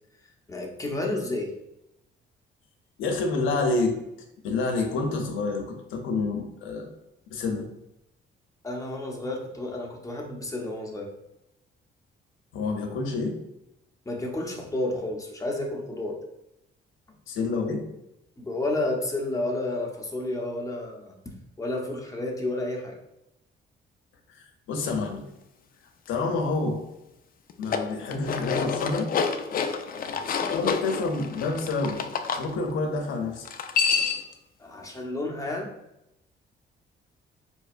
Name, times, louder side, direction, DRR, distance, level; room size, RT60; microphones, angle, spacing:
voice 1, 0.5-1.5 8.6-11.1 14.1-16.2 18.4-21.1 21.6-23.0 29.9-30.1 34.6-35.7, left 2 dB, 15° left, 0 dB, 0.8 m, -31 dB
voice 2, 3.0-4.0 4.4-6.9 7.3-7.7 12.5-13.4 17.3-17.9 24.3-25.2 26.1-26.8 27.6-29.1 30.4-32.0 32.4-33.5, left 3 dB, 85° left, 3 dB, 0.7 m, -28 dB
sound 1, 27.5-32.4 33.4-34.3, left 6 dB, 45° left, 0.4 m, -28 dB
4.6 x 2.8 x 2.4 m, 0.87 s
cardioid pair, 90°, 20 cm